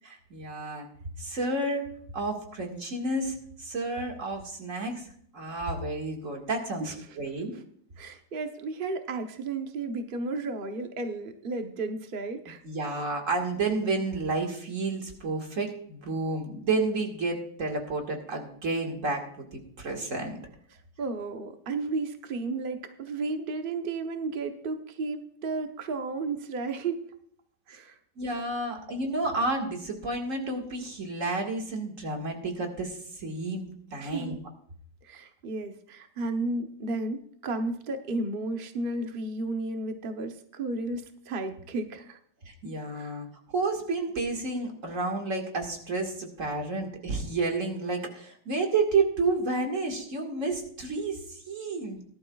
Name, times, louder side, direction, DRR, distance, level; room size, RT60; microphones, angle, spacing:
voice 1, 0.0-0.9 1.2-1.9 2.1-5.1 5.3-7.5 12.6-20.4 28.2-34.4 42.5-52.0, right 3 dB, 40° right, 1 dB, 2.1 m, -31 dB
voice 2, 8.0-12.6 21.0-27.0 27.7-28.0 34.0-34.4 35.0-42.2 42.9-43.2, right 3 dB, 60° right, 5 dB, 0.5 m, -33 dB
18.5 x 11.5 x 2.4 m, 0.64 s
omnidirectional pair, 2.3 m